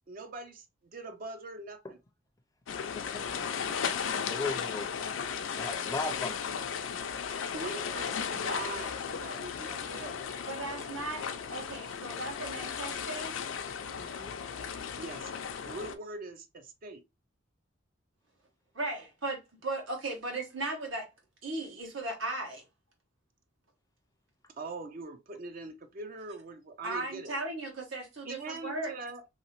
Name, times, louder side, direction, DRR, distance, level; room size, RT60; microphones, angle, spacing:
voice 1, 0.1-0.7 0.9-2.0 7.5-10.2 15.0-15.3 15.7-17.0 24.6-27.3 28.3-29.3, right 2 dB, 45° right, 0.4 m, -42 dB
sound 1, 2.7-16.0, left 7 dB, 80° left, 0.4 m, -35 dB
voice 2, 4.3-5.1 5.5-6.5 14.0-14.3, left 3 dB, 15° left, 0.4 m, -37 dB
voice 3, 10.5-11.2 11.5-13.3 18.7-21.1 21.4-22.6 26.8-28.9, right 2 dB, 80° right, 1.3 m, -36 dB
2.9 x 2.8 x 2.9 m
head